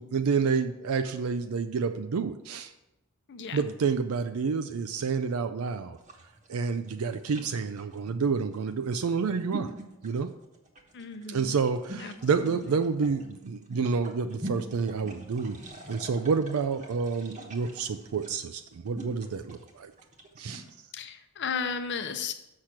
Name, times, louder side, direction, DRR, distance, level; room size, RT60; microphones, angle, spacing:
voice 1, 0.0-2.7 3.5-6.0 6.5-9.7 10.0-10.3 11.3-15.6 15.9-19.9 20.4-20.6, right 5 dB, 70° right, 9 dB, 0.4 m, -29 dB
voice 2, 3.3-3.6 10.9-11.6 12.0-12.8 20.9-22.3, left 6 dB, 55° left, 8 dB, 0.7 m, -35 dB
sound 1, 5.9-20.7, right 1 dB, 35° right, 1.1 m, -44 dB
6.6 x 5.9 x 5.9 m, 0.91 s
head